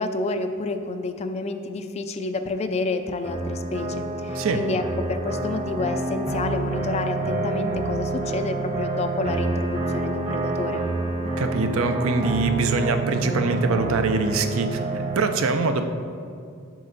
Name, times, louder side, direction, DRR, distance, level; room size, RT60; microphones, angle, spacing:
voice 1, 0.0-10.8, left 3 dB, 30° left, 8 dB, 0.4 m, -29 dB
sound 1, 3.2-15.3, right 2 dB, 30° right, 1.0 m, -28 dB
voice 2, 11.4-15.8, right 4 dB, 65° right, 7 dB, 0.5 m, -23 dB
7.6 x 6.4 x 4.0 m, 2.3 s
head